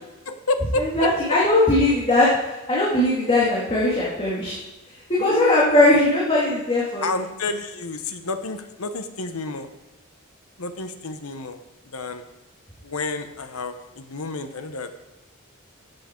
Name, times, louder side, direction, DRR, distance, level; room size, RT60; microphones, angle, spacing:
voice 1, 0.3-1.1 5.2-6.0 7.0-9.7 10.6-11.6 11.8-12.2 12.8-15.0, left 3 dB, 70° left, 8 dB, 1.0 m, -30 dB
voice 2, 0.8-4.6 5.1-7.0, left 1 dB, 25° left, -7 dB, 2.3 m, -19 dB
13.5 x 8.0 x 4.5 m, 1.1 s
head